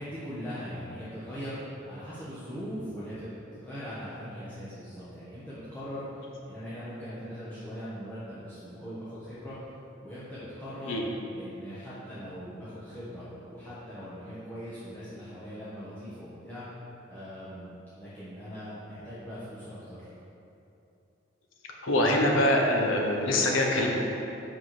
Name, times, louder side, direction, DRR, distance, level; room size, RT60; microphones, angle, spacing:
voice 1, 0.0-6.1 6.5-9.6 10.0-11.0 11.3-16.6 17.1-17.7 18.0-20.1, equal, 10° left, -12 dB, 1.3 m, -40 dB
voice 2, 21.8-23.9, left 1 dB, 80° left, 0 dB, 1.1 m, -24 dB
5.8 x 5.5 x 6.1 m, 2.8 s
head